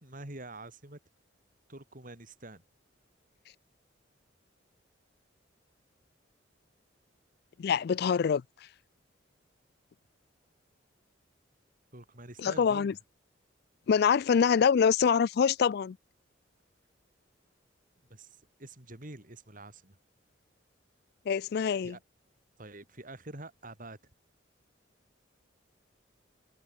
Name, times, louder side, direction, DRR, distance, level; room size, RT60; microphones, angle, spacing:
voice 1, 0.0-1.0 1.7-2.6 11.9-13.0 18.1-20.0 21.8-22.0 22.6-24.0, right 2 dB, 45° right, 3.5 m, -46 dB
voice 2, 7.6-8.4 12.4-12.9 13.9-16.0 21.3-22.0, left 7 dB, 55° left, 0.3 m, -25 dB
head